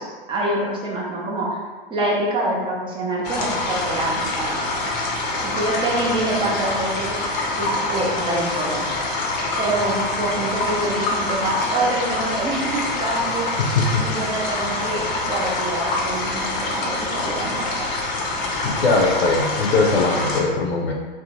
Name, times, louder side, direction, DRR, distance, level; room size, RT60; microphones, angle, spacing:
voice 1, 0.0-1.6 1.9-4.6 5.4-7.2 7.6-8.9 9.6-13.4 14.0-17.8, right 1 dB, 15° right, -3 dB, 0.5 m, -26 dB
sound 1, 3.2-20.4, left 2 dB, 35° left, 0.6 m, -25 dB
voice 2, 13.6-14.1 18.6-20.9, left 3 dB, 85° left, 0 dB, 0.5 m, -20 dB
2.6 x 2.1 x 2.9 m, 1.3 s
hypercardioid pair, 105°, 30 cm